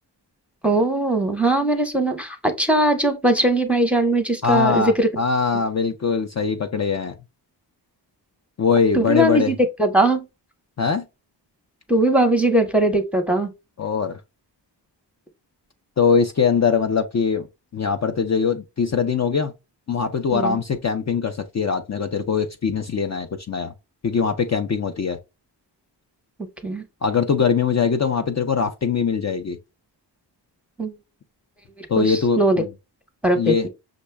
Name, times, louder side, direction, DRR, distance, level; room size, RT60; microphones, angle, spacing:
voice 1, 0.6-5.1 8.9-10.2 11.9-13.5 20.3-20.6 26.6-26.8 30.8-30.9 32.0-32.6 33.2-33.7, right 1 dB, 5° right, 0.8 m, -20 dB
voice 2, 4.4-7.2 8.6-9.5 10.8-11.0 13.8-14.2 16.0-17.5 17.7-19.5 19.9-23.7 24.0-25.2 27.0-29.6 31.9-32.7 33.3-33.7, left 6 dB, 40° left, 0.5 m, -22 dB
6.2 x 2.2 x 3.2 m
wide cardioid pair, 130°, 44 cm